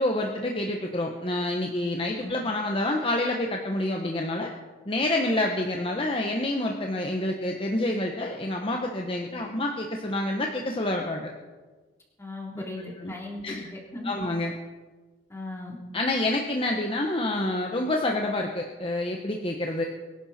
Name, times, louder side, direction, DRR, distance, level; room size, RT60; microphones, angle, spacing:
voice 1, 0.0-4.5 4.9-11.3 13.0-13.1 13.4-13.6 14.0-14.5 15.9-19.8, left 1 dB, 30° left, 1 dB, 1.2 m, -28 dB
voice 2, 12.2-14.2 15.3-15.8, left 2 dB, 15° left, -2 dB, 3.5 m, -37 dB
24.0 x 11.0 x 4.3 m, 1.3 s
head